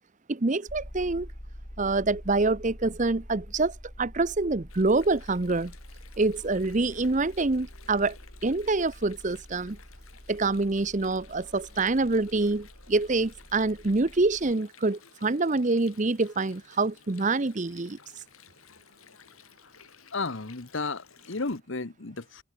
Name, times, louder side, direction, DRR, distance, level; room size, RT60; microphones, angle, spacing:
voice 1, 0.3-1.3 1.8-5.7 6.2-8.2 8.4-9.8 10.3-18.0, right 3 dB, 35° right, 0.7 m, -26 dB
sound 1, 0.7-14.5, equal, 20° left, 2.9 m, -46 dB
Water, 4.7-21.6, left 7 dB, 85° left, 7.7 m, -56 dB
voice 2, 20.1-22.4, left 3 dB, 60° left, 1.2 m, -33 dB
open air
head